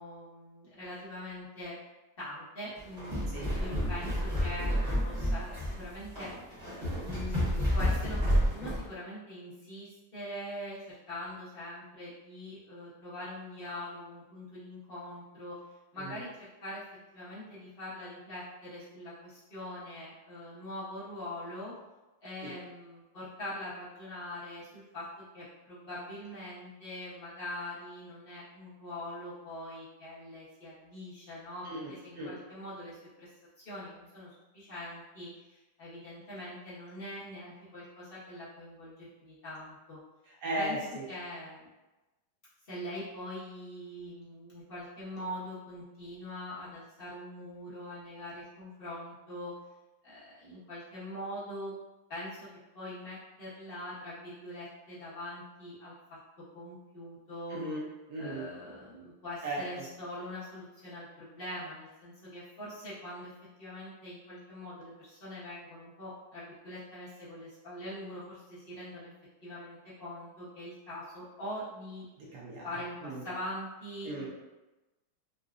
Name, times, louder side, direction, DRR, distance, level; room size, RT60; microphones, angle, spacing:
voice 1, 0.0-1.8 2.2-4.7 5.0-6.3 7.0-15.6 15.9-16.8 17.1-21.7 22.2-25.0 25.3-31.7 32.0-33.3 33.6-40.0 40.5-40.8 41.1-41.7 42.6-49.5 50.0-51.7 52.1-52.5 52.7-55.9 56.5-57.6 58.2-63.3 63.6-69.1 69.4-72.1 72.6-74.3, left 1 dB, 50° left, -10 dB, 0.7 m, -43 dB
sound 1, 2.8-8.9, equal, 30° right, 0.8 m, -30 dB
voice 2, 31.6-32.3 40.3-41.0 57.5-58.5 59.4-59.8 72.2-72.7 73.0-73.2 74.0-74.3, right 1 dB, 70° right, -5 dB, 1.3 m, -37 dB
3.8 x 2.1 x 2.4 m, 1.1 s
omnidirectional pair, 2.0 m